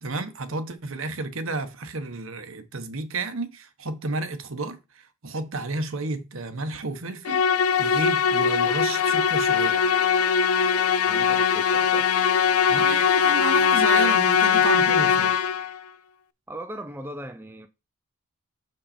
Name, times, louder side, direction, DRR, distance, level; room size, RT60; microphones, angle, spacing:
voice 1, 0.0-9.8 12.7-15.4, right 3 dB, 70° right, 1.0 m, -32 dB
Musical instrument, 7.3-15.8, left 7 dB, 85° left, 0.5 m, -21 dB
voice 2, 11.0-12.1 16.5-17.7, right 1 dB, 10° right, 0.4 m, -38 dB
6.6 x 5.3 x 4.3 m
head